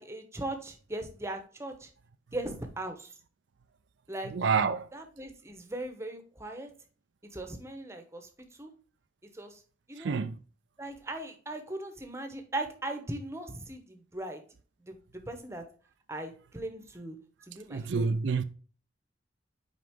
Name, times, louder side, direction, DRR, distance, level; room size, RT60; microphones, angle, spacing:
voice 1, 0.0-1.9 2.3-3.1 4.1-4.3 4.9-6.7 7.3-8.3 8.6-8.7 9.3-9.6 9.9-10.2 10.8-14.4 14.9-15.6 16.1-17.2 17.5-18.1, right 1 dB, 15° right, 1.0 m, -39 dB
voice 2, 4.3-4.9 10.0-10.4 17.7-18.4, right 5 dB, 65° right, 0.4 m, -28 dB
5.9 x 5.0 x 3.6 m
head